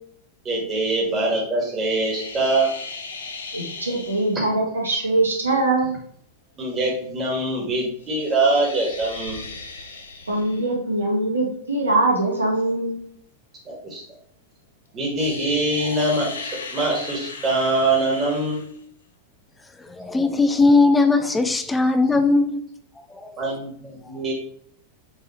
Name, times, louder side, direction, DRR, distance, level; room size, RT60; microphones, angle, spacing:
voice 1, 0.4-2.7 6.6-9.4 13.7-14.0 14.9-18.6 23.4-24.3, right 2 dB, 25° right, -2 dB, 2.0 m, -23 dB
sound 1, 1.9-4.4 8.0-10.7 15.2-18.8, left 4 dB, 70° left, 0.9 m, -37 dB
voice 2, 3.5-5.9 10.3-13.0, right 2 dB, 75° right, -2 dB, 2.2 m, -22 dB
voice 3, 19.8-22.6 23.1-23.3, left 3 dB, 10° left, 8 dB, 0.6 m, -19 dB
6.9 x 3.9 x 4.3 m, 0.66 s
figure-of-eight pair, 90°, 0 cm